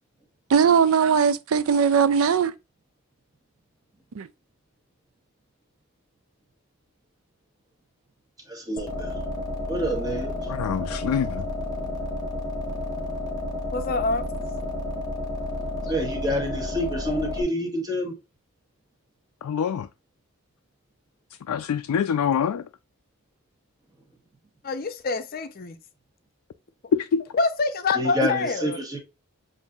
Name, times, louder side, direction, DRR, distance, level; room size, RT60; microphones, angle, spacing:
voice 1, 0.5-2.5 4.1-4.3, right 6 dB, 65° right, 0.4 m, -19 dB
voice 2, 8.5-9.1 9.7-10.6 10.8-11.0 15.9-18.1 27.9-29.0, equal, 15° right, 1.1 m, -28 dB
sound 1, 8.8-17.4, left 1 dB, 15° left, 1.1 m, -31 dB
voice 3, 10.6-11.4 19.4-19.9 21.5-22.6 26.9-27.2, left 7 dB, 85° left, 0.3 m, -25 dB
voice 4, 13.7-14.2 24.6-25.8 27.3-28.8, left 3 dB, 40° left, 0.6 m, -26 dB
7.0 x 2.6 x 2.3 m
head